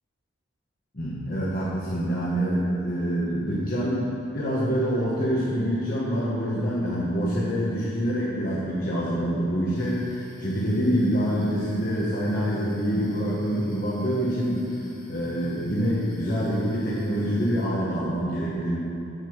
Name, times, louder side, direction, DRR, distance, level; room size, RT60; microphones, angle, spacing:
voice 1, 0.9-18.8, equal, 45° left, -7 dB, 1.4 m, -26 dB
sound 1, 9.7-17.7, left 1 dB, 20° left, 1.4 m, -44 dB
7.9 x 6.8 x 6.5 m, 2.9 s
head